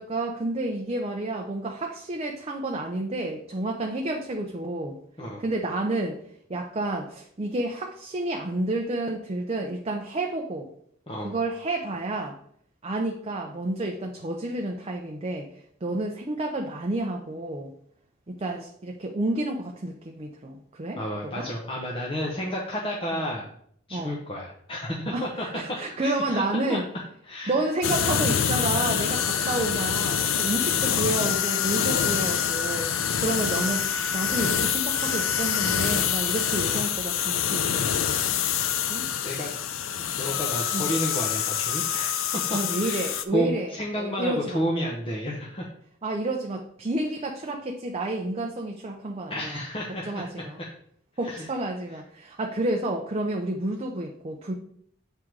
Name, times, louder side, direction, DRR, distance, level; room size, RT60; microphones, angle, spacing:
voice 1, 0.0-5.0 5.4-6.2 6.5-10.7 11.2-12.4 12.8-15.5 15.8-17.7 18.3-21.0 21.4-21.5 23.1-23.2 23.9-24.2 25.1-26.8 27.5-32.9 33.2-38.1 38.9-39.1 40.7-40.9 42.5-44.6 46.0-49.6 50.1-50.6 51.2-54.5, right 2 dB, 30° right, 1 dB, 0.6 m, -30 dB
voice 2, 21.0-23.5 23.9-25.5 26.0-26.4 26.7-26.8 27.2-27.6 36.7-36.8 39.1-39.6 39.9-45.7 49.3-50.7 51.2-51.5, equal, 30° left, -3 dB, 0.9 m, -31 dB
sound 1, 27.8-43.2, left 8 dB, 80° left, 0.5 m, -26 dB
7.7 x 3.6 x 4.6 m, 0.67 s
head